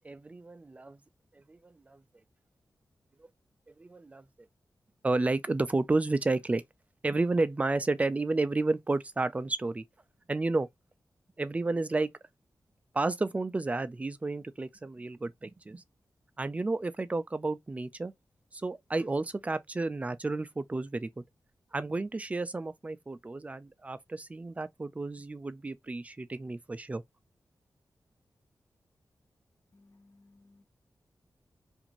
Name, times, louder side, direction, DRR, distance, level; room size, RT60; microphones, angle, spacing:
voice 1, 0.0-1.0 1.5-2.0 3.8-4.2 5.0-6.6 7.0-9.8 10.3-10.7 11.4-12.1 12.9-15.8 16.4-18.1 18.5-21.2 21.7-27.0, right 3 dB, 20° right, 0.3 m, -31 dB
voice 2, 29.7-30.6, left 2 dB, 45° left, 0.9 m, -61 dB
2.5 x 2.5 x 2.9 m
wide cardioid pair, 95°, 7 cm